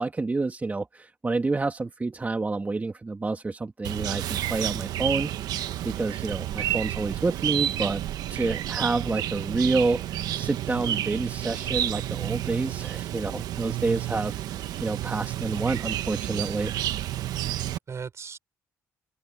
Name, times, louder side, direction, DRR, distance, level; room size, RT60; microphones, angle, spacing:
voice 1, 0.0-5.3 5.8-16.7, right 3 dB, 25° right, 2.5 m, -28 dB
Chirp tweet, 3.8-17.8, right 12 dB, 75° right, 1.2 m, -30 dB
voice 2, 17.2-18.4, right 6 dB, 45° right, 6.1 m, -40 dB
open air
cardioid pair, 75°, 7 cm